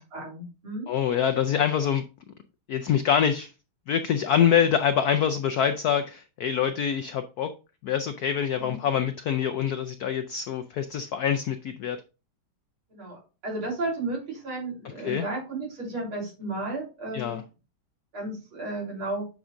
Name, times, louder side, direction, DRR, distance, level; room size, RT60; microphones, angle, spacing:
voice 1, 0.0-0.9 8.6-8.8 12.9-17.4 18.1-19.3, right 2 dB, 85° right, 4.6 m, -33 dB
voice 2, 0.9-2.0 2.7-3.5 3.9-7.5 7.8-12.0 15.0-15.3 17.1-17.4, left 8 dB, 80° left, 0.8 m, -25 dB
10.5 x 5.0 x 2.6 m
omnidirectional pair, 2.3 m